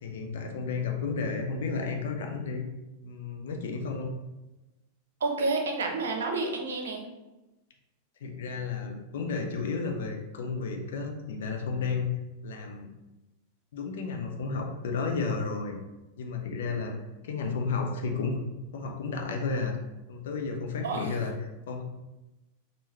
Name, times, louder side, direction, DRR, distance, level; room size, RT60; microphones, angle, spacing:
voice 1, 0.0-2.6 3.0-4.1 8.2-12.1 12.4-12.9 13.7-15.8 16.2-16.9 17.2-18.4 18.7-19.8 20.1-21.9, left 4 dB, 60° left, 3 dB, 0.7 m, -32 dB
voice 2, 5.2-7.0 20.8-21.1, right 3 dB, 65° right, 3 dB, 0.8 m, -29 dB
5.4 x 2.9 x 3.0 m, 1.0 s
figure-of-eight pair, 90°, 0 cm